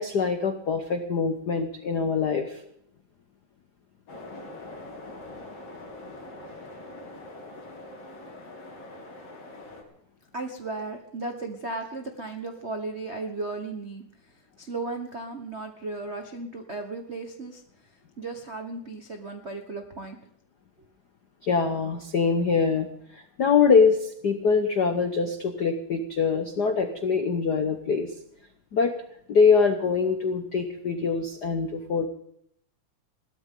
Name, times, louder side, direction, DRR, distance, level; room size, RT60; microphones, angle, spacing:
voice 1, 0.0-2.6 21.4-22.9 23.1-28.1 28.7-28.9 29.3-32.1, left 5 dB, 80° left, 7 dB, 0.9 m, -24 dB
sound 1, 4.1-9.8, left 2 dB, 50° left, 3.8 m, -43 dB
voice 2, 10.3-14.0 14.6-17.6 18.2-20.2, right 3 dB, 70° right, 4 dB, 0.6 m, -35 dB
21.5 x 17.0 x 3.8 m, 0.68 s
omnidirectional pair, 3.5 m